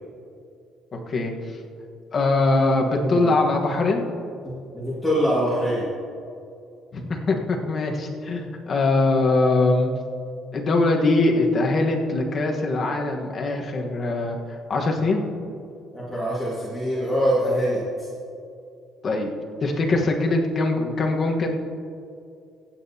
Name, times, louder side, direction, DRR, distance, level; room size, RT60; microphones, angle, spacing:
voice 1, 0.9-1.3 2.1-4.0 6.9-9.9 10.5-14.4 14.7-15.2 19.0-19.3 19.6-21.5, left 2 dB, 35° left, 2 dB, 1.2 m, -22 dB
voice 2, 3.0-3.3 4.4-5.8 15.9-18.1, equal, 5° left, -9 dB, 1.9 m, -24 dB
24.5 x 8.8 x 2.8 m, 2.4 s
cardioid pair, 170°, 0 cm